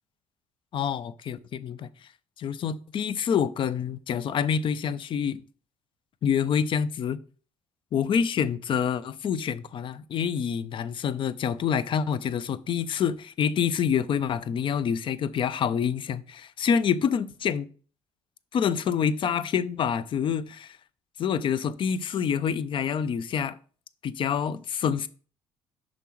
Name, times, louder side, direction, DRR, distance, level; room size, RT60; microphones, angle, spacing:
voice 1, 0.7-1.9 2.4-5.4 6.2-7.2 7.9-17.7 18.5-20.8 21.2-23.6 24.0-25.1, left 7 dB, 50° left, 0.5 m, -27 dB
6.7 x 5.2 x 3.1 m
supercardioid pair, 65°, 11 cm